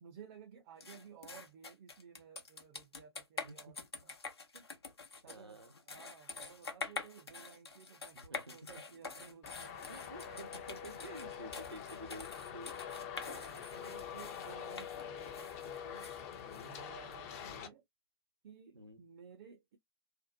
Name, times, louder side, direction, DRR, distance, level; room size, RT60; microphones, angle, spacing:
voice 1, 0.0-4.1 5.2-9.7 10.9-11.1 13.3-16.1 16.6-17.8 18.4-19.8, right 7 dB, 40° right, 0.5 m, -56 dB
sound 1, 0.8-17.2, left 4 dB, 75° left, 0.8 m, -47 dB
voice 2, 5.2-5.7 8.1-8.6 9.9-12.7 16.4-16.7 17.4-17.7 18.7-19.0, right 1 dB, 80° right, 0.9 m, -51 dB
Traffic noise roadway noise, 9.4-17.7, left 8 dB, 35° left, 0.6 m, -45 dB
2.6 x 2.2 x 2.5 m
figure-of-eight pair, 110°, 13 cm